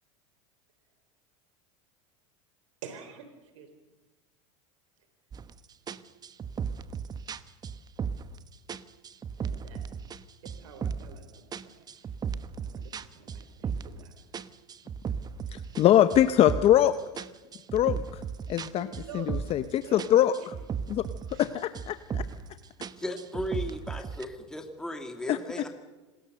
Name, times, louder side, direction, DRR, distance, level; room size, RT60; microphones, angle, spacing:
voice 1, 2.8-3.7 9.4-9.9 10.4-12.2 12.6-14.3 18.7-20.1 20.4-20.5 21.3-21.4, right 7 dB, 85° right, 7 dB, 3.8 m, -47 dB
sound 1, 5.3-5.5 5.9-8.4 8.7-10.2 10.4-11.2 11.5-14.0 14.3-16.8 17.2-19.7 20.0-21.5 21.7-22.5 22.8-24.2, right 6 dB, 25° right, 1.1 m, -35 dB
voice 2, 15.5-17.2 17.7-18.2 18.5-18.9 19.1-20.3 20.9-21.0 21.3-22.2 25.3-25.4, left 11 dB, 40° left, 12 dB, 0.9 m, -23 dB
voice 3, 23.0-25.7, left 1 dB, 5° left, 5 dB, 2.2 m, -36 dB
26.5 x 20.5 x 6.6 m, 1.2 s
supercardioid pair, 115°, 16 cm